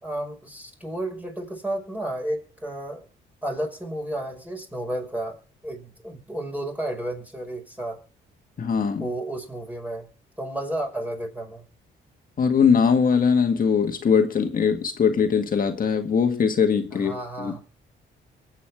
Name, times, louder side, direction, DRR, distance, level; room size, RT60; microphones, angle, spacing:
voice 1, 0.0-3.1 3.4-8.0 9.0-10.1 10.4-11.6 16.9-17.6, right 1 dB, 10° right, 2 dB, 5.5 m, -32 dB
voice 2, 8.6-9.1 12.4-17.6, left 6 dB, 45° left, 5 dB, 1.8 m, -21 dB
24.0 x 8.6 x 3.6 m, 0.37 s
cardioid pair, 90°, 20 cm